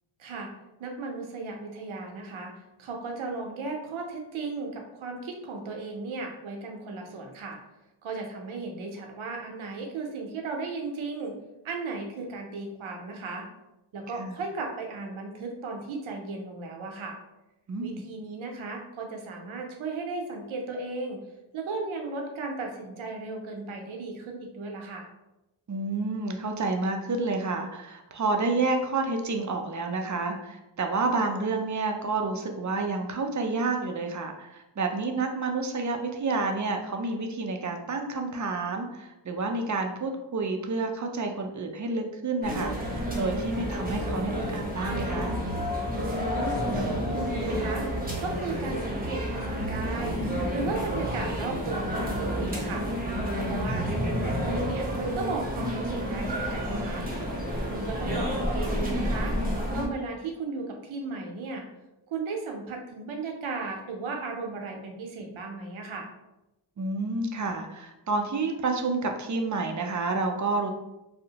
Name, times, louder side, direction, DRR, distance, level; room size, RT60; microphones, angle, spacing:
voice 1, 0.8-2.5 2.8-7.6 8.0-11.3 11.6-13.5 13.9-17.2 17.8-21.2 21.5-25.1 46.1-47.9 48.2-50.2 50.5-52.9 53.4-57.0 57.7-59.3 59.7-61.6 62.1-66.1, right 3 dB, 90° right, 2 dB, 0.6 m, -35 dB
voice 2, 17.7-18.0 25.7-45.4 53.7-53.9 66.8-70.7, right 3 dB, 40° right, 4 dB, 0.4 m, -29 dB
sound 1, 42.4-59.9, equal, 20° right, 0.8 m, -30 dB
sound 2, 44.3-49.9, left 4 dB, 55° left, 0.8 m, -39 dB
2.7 x 2.1 x 2.8 m, 0.96 s
cardioid pair, 55°, 47 cm